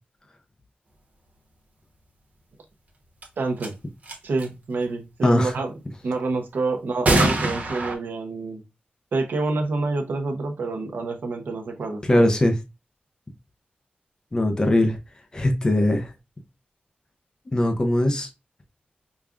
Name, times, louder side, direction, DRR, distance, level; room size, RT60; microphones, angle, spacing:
sound 1, 3.2-3.3 3.6-3.7 4.0-4.4 7.0-7.9, right 1 dB, 50° right, 1.0 m, -22 dB
voice 1, 3.4-3.7 4.2-5.7 6.0-8.6 9.1-12.2, right 3 dB, 70° right, 0.7 m, -27 dB
voice 2, 12.1-12.5 14.3-15.0 15.3-16.1 17.5-18.3, left 1 dB, 20° left, 0.5 m, -20 dB
5.0 x 2.3 x 2.4 m
wide cardioid pair, 150°, 3 cm